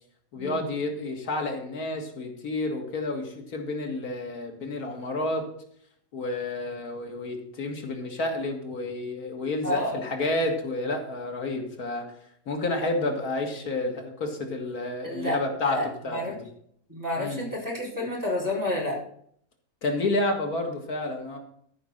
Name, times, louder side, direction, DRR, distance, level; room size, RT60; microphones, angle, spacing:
voice 1, 0.3-5.5 6.1-12.1 12.5-16.4 17.2-17.4 19.8-21.4, left 2 dB, 85° left, 3 dB, 2.2 m, -30 dB
voice 2, 9.6-10.0 15.0-15.4 15.7-15.8 16.1-16.3 16.9-19.0, left 1 dB, 10° right, -4 dB, 4.0 m, -29 dB
13.5 x 5.5 x 6.5 m, 0.66 s
omnidirectional pair, 1.5 m